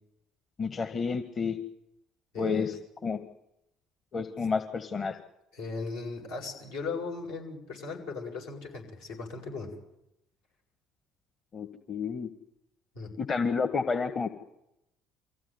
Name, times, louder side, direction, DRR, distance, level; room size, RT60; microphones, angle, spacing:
voice 1, 0.6-1.6 2.4-2.7 3.0-3.2 4.1-5.2 11.5-12.3 13.2-14.3, left 5 dB, 40° left, 8 dB, 1.8 m, -30 dB
voice 2, 2.3-2.8 5.5-9.7 12.9-13.1, left 4 dB, 75° left, -1 dB, 7.8 m, -37 dB
24.5 x 16.0 x 9.7 m, 0.85 s
hypercardioid pair, 55°, 0 cm